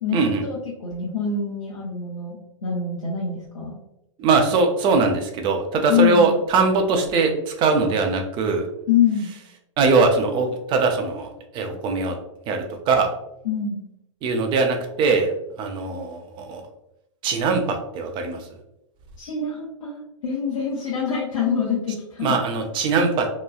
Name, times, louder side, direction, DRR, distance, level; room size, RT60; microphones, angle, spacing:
voice 1, 0.0-3.8 5.9-6.3 8.9-9.3 13.4-13.8 19.2-22.4, left 7 dB, 75° left, -5 dB, 0.8 m, -25 dB
voice 2, 4.2-8.7 9.8-12.1 12.5-13.1 14.2-15.3 15.6-16.6 17.2-18.5 22.2-23.3, right 4 dB, 30° right, 4 dB, 0.4 m, -21 dB
3.0 x 2.2 x 2.3 m, 0.85 s
hypercardioid pair, 110°, 17 cm